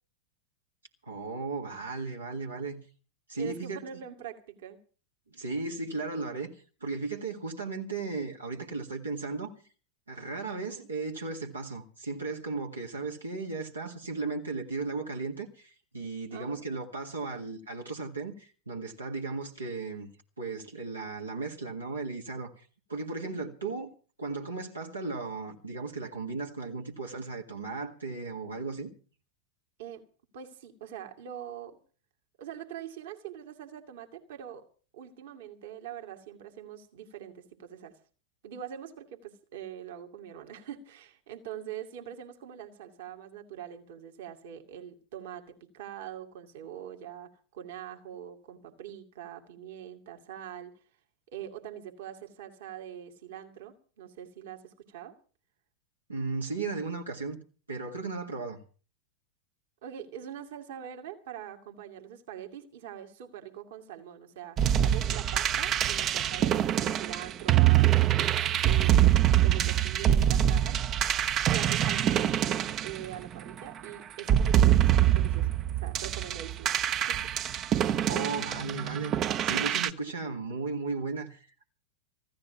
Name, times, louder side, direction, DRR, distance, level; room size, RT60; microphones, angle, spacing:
voice 1, 1.1-2.8 3.3-3.8 5.3-9.5 10.1-20.1 20.4-23.9 24.2-28.9 56.1-57.4 57.7-58.6 77.9-79.1 79.4-81.7, right 3 dB, 80° right, 1.9 m, -36 dB
voice 2, 3.4-4.8 10.6-10.9 16.3-16.6 23.2-23.5 29.8-30.0 30.3-31.8 32.4-34.7 34.9-38.0 38.4-50.7 51.3-55.1 59.8-68.4 68.6-70.8 71.5-72.3 72.8-75.5 75.8-77.3, right 10 dB, 55° right, 2.1 m, -43 dB
sound 1, 64.6-73.6 74.2-79.9, right 11 dB, 30° right, 0.7 m, -25 dB
15.5 x 13.0 x 5.9 m
figure-of-eight pair, 90°, 0 cm